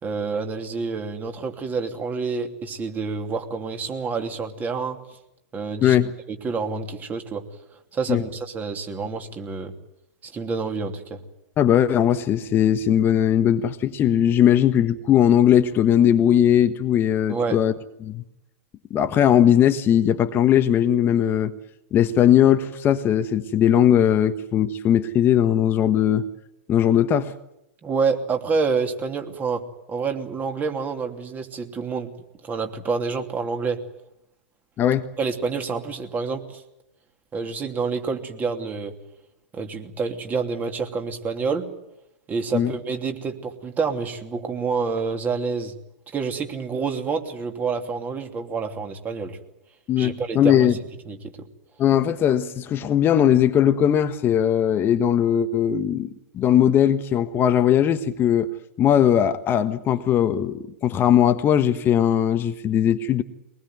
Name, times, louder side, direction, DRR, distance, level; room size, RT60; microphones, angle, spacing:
voice 1, 0.0-5.0 5.5-6.0 6.3-7.4 7.9-9.7 10.2-11.2 17.3-17.6 27.8-29.6 29.9-32.1 32.4-33.8 35.2-36.6 37.3-38.9 39.5-41.7 42.3-45.7 46.1-49.4 50.0-50.7 51.1-51.3, right 5 dB, 20° right, 5 dB, 2.9 m, -28 dB
voice 2, 11.6-17.7 18.0-18.2 18.9-21.5 21.9-26.3 26.7-27.3 34.8-35.0 42.5-42.7 49.9-50.8 51.8-56.1 56.3-58.5 58.8-63.2, left 10 dB, 30° left, 9 dB, 1.3 m, -19 dB
23.0 x 20.0 x 9.4 m, 0.86 s
hypercardioid pair, 105°, 7 cm